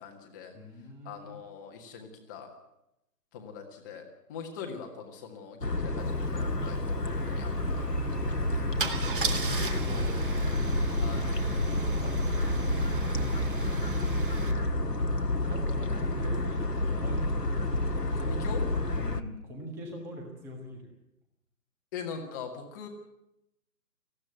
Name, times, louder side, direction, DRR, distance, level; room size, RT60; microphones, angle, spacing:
voice 1, 0.0-0.5 1.0-2.5 3.3-8.5 10.9-11.3 12.8-13.1 13.5-13.9 18.1-18.7 21.9-22.9, left 6 dB, 10° left, 3 dB, 1.6 m, -43 dB
voice 2, 0.5-1.3 9.1-10.6 11.6-12.1 15.2-17.4 18.9-20.9, equal, 5° right, 2 dB, 1.5 m, -43 dB
sound 1, 5.6-19.2, left 1 dB, 85° left, 1.6 m, -29 dB
Car / Engine starting / Idling, 6.2-6.3 6.5-6.8 8.8-14.5, right 5 dB, 35° right, 1.6 m, -38 dB
sound 2, 7.1-14.0, right 8 dB, 50° right, 7.6 m, -40 dB
19.5 x 15.0 x 9.2 m, 0.87 s
figure-of-eight pair, 145°, 48 cm